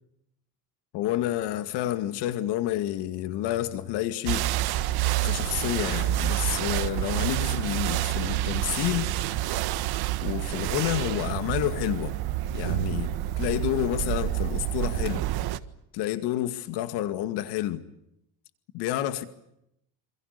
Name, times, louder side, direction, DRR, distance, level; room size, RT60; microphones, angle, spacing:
voice 1, 0.9-4.4 5.2-9.1 10.2-12.1 12.5-15.3 15.9-17.8 18.7-19.2, left 13 dB, 85° left, 2.2 m, -29 dB
sound 1, 4.3-15.6, right 14 dB, 70° right, 1.7 m, -28 dB
27.5 x 27.5 x 6.8 m
cardioid pair, 135°, 40 cm